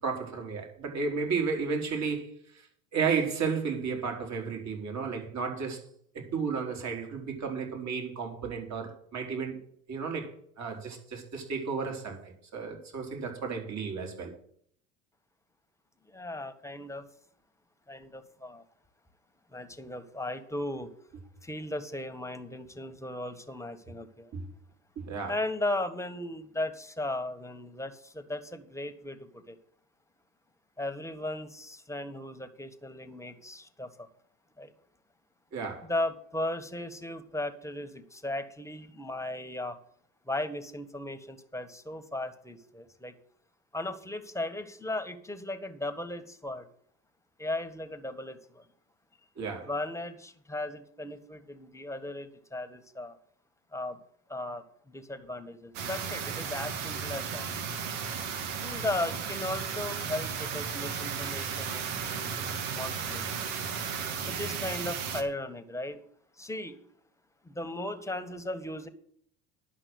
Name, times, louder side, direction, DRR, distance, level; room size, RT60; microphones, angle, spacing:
voice 1, 0.0-2.3 2.5-2.7 2.9-5.8 6.1-9.6 9.9-14.3 24.3-24.5 25.0-25.3 35.5-35.9 49.4-49.7 61.9-62.0, right 5 dB, 45° right, 2 dB, 4.0 m, -33 dB
voice 2, 16.1-17.1 17.9-18.6 19.5-20.9 21.4-24.3 25.3-29.5 30.8-33.9 34.6-34.7 35.9-39.8 40.3-43.1 43.7-46.7 47.4-48.6 49.6-53.1 53.7-54.0 54.3-57.4 58.6-63.3 64.2-66.0 66.4-66.8 67.4-68.9, left 1 dB, 5° left, 9 dB, 1.6 m, -36 dB
sound 1, 55.7-65.2, right 6 dB, 75° right, 1.8 m, -34 dB
11.0 x 6.1 x 7.9 m, 0.62 s
hypercardioid pair, 80°, 40 cm